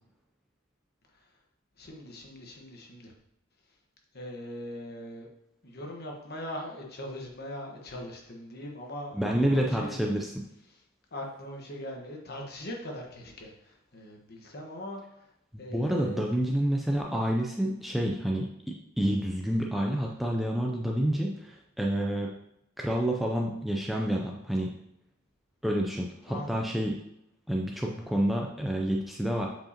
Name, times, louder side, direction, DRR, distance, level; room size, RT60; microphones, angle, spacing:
voice 1, 1.8-3.1 4.1-5.3 5.6-10.0 11.1-15.0 15.6-16.2 26.3-26.7, equal, 45° left, 0 dB, 1.3 m, -40 dB
voice 2, 9.1-10.4 15.5-22.3 22.8-24.7 25.6-27.0 27.5-29.5, equal, ahead, -1 dB, 0.4 m, -29 dB
7.7 x 4.9 x 2.9 m, 0.81 s
head